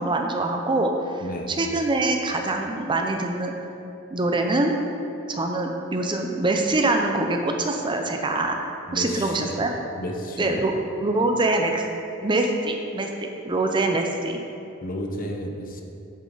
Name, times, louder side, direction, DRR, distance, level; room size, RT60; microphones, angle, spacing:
voice 1, 0.0-1.2 1.5-3.5 4.1-4.7 5.3-8.6 8.9-9.7 10.4-10.7 11.0-11.8 12.2-14.4, right 2 dB, 25° right, 3 dB, 0.5 m, -24 dB
voice 2, 1.2-1.5 8.9-9.7 10.0-10.7 14.8-15.8, equal, 45° left, 2 dB, 0.8 m, -32 dB
8.3 x 7.3 x 3.9 m, 2.8 s
head